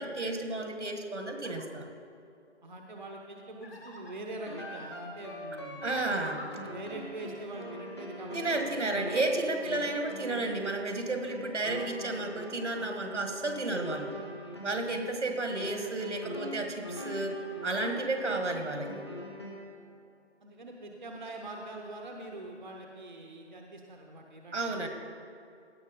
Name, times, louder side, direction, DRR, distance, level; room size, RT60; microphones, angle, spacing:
voice 1, 0.0-1.9 5.8-6.5 8.3-14.2 14.6-19.1 24.5-24.9, right 2 dB, 75° right, 5 dB, 1.7 m, -32 dB
sound 1, 1.3-1.6 3.6-4.1 5.9-6.5, left 2 dB, 55° left, 1.8 m, -47 dB
voice 2, 2.6-5.9 6.3-8.6 14.7-14.9 20.4-24.9, right 2 dB, 40° right, 1 dB, 0.8 m, -44 dB
sound 2, 4.5-19.8, left 1 dB, 25° left, 1.0 m, -42 dB
17.0 x 5.9 x 5.1 m, 2.6 s
figure-of-eight pair, 170°, 35 cm